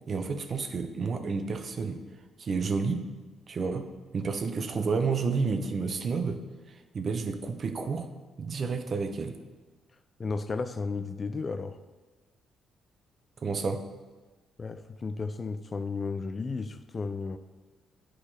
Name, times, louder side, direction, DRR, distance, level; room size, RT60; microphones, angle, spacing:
voice 1, 0.1-2.0 2.4-3.0 3.5-3.9 4.1-6.4 6.7-8.1 8.4-9.4 13.4-13.8, right 4 dB, 45° right, 7 dB, 0.7 m, -30 dB
voice 2, 10.2-11.8 14.6-17.4, left 4 dB, 35° left, 10 dB, 0.4 m, -33 dB
8.8 x 4.7 x 4.3 m, 1.3 s
cardioid pair, 90°, 0 cm